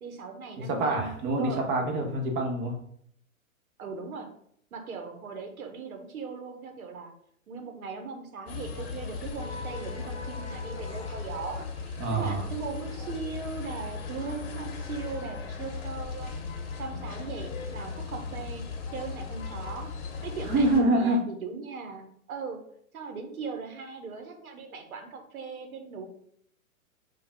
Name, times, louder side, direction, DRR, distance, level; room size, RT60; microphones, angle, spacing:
voice 1, 0.0-1.1 1.4-1.6 3.8-4.3 4.7-7.1 7.5-16.3 16.8-18.6 18.9-19.9 20.2-22.6 22.9-26.1, right 5 dB, 80° right, 5 dB, 0.9 m, -39 dB
voice 2, 0.6-2.7 12.0-12.4 20.5-21.2, right 2 dB, 25° right, 1 dB, 0.7 m, -26 dB
sound 1, 8.5-20.8, left 5 dB, 45° left, 0.9 m, -37 dB
3.4 x 2.3 x 3.4 m, 0.67 s
hypercardioid pair, 120°, 42 cm